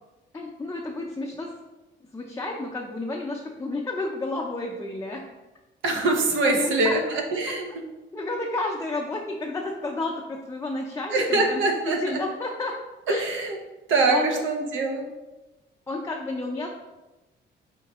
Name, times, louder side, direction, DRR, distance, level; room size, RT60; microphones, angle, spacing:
voice 1, 0.3-1.5 2.1-5.2 6.4-6.9 8.1-12.8 13.1-13.2 14.0-14.4 15.9-16.8, left 2 dB, 15° left, -1 dB, 0.5 m, -31 dB
voice 2, 5.8-7.8 11.1-12.2 13.1-13.6 13.9-15.0, right 2 dB, 75° right, 2 dB, 0.8 m, -24 dB
4.3 x 3.9 x 3.0 m, 1.1 s
cardioid pair, 90°, 20 cm